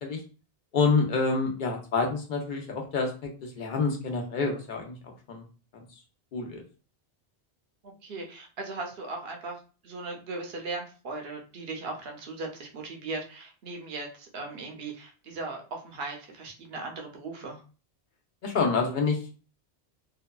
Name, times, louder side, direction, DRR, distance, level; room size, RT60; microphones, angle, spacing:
voice 1, 0.7-5.4 6.3-6.6 18.4-19.3, left 4 dB, 55° left, 2 dB, 0.7 m, -28 dB
voice 2, 7.8-17.6, right 3 dB, 70° right, 2 dB, 0.9 m, -38 dB
2.7 x 2.2 x 2.2 m, 0.36 s
omnidirectional pair, 1.1 m